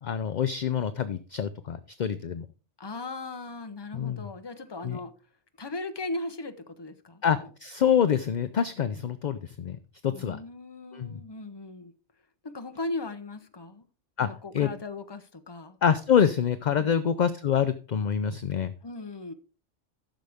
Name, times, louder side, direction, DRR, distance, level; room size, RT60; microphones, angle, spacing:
voice 1, 0.0-2.5 3.9-4.3 4.8-5.0 7.2-9.8 10.0-10.4 10.9-11.2 14.2-14.3 14.5-14.7 15.8-18.7, left 8 dB, 50° left, 0.5 m, -26 dB
voice 2, 2.8-5.1 5.6-7.5 10.1-11.9 12.4-13.8 14.2-15.8 16.8-17.1 18.8-19.3, left 2 dB, 25° left, 0.8 m, -38 dB
14.0 x 6.5 x 3.5 m
omnidirectional pair, 1.2 m